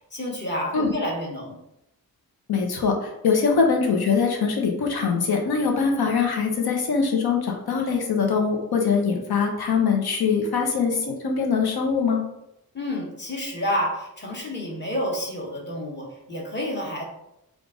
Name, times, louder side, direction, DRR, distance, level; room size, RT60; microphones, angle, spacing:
voice 1, 0.1-1.6 12.7-17.0, left 1 dB, 30° left, -1 dB, 1.2 m, -29 dB
voice 2, 2.5-12.2, left 5 dB, 85° left, 2 dB, 0.9 m, -23 dB
3.8 x 2.5 x 4.7 m, 0.85 s
wide cardioid pair, 105°, 37 cm